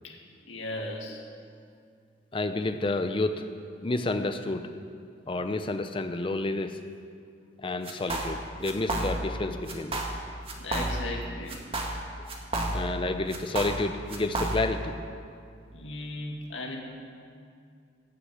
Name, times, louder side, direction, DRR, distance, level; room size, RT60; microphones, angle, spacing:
voice 1, 0.5-1.2 10.6-11.6 15.7-16.8, left 2 dB, 85° left, 0 dB, 2.1 m, -36 dB
voice 2, 2.3-3.5 3.8-4.7 5.3-6.8 7.6-10.0 12.2-12.4 12.7-15.0, left 2 dB, 25° left, 8 dB, 0.5 m, -30 dB
sound 1, 7.8-8.4 8.6-9.4 9.7-10.2 10.5-11.2 11.5-13.0 13.3-14.8, right 1 dB, 30° right, 1.5 m, -31 dB
17.5 x 6.5 x 7.9 m, 2.3 s
head